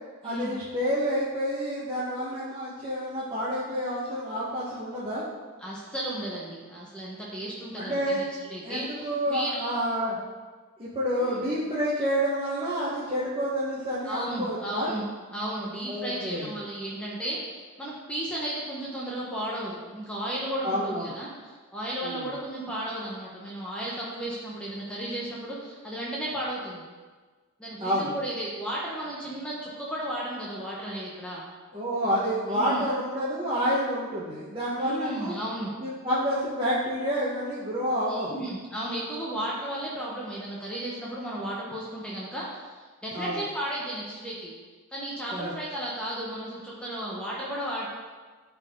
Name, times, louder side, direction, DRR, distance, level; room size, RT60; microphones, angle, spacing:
voice 1, 0.2-5.2 7.8-8.2 8.6-10.2 10.8-14.9 15.9-16.5 20.6-21.1 22.0-22.4 27.8-28.1 31.7-35.3 35.8-38.4 43.1-43.4 45.3-45.5, equal, 25° right, -10 dB, 1.5 m, -29 dB
voice 2, 5.6-8.2 8.5-9.7 11.2-11.4 14.0-15.0 15.3-21.3 21.7-26.8 27.6-31.4 32.5-32.8 34.8-35.7 38.1-44.5 44.9-47.9, right 1 dB, 5° left, -6 dB, 1.2 m, -34 dB
13.0 x 4.5 x 3.9 m, 1.4 s
head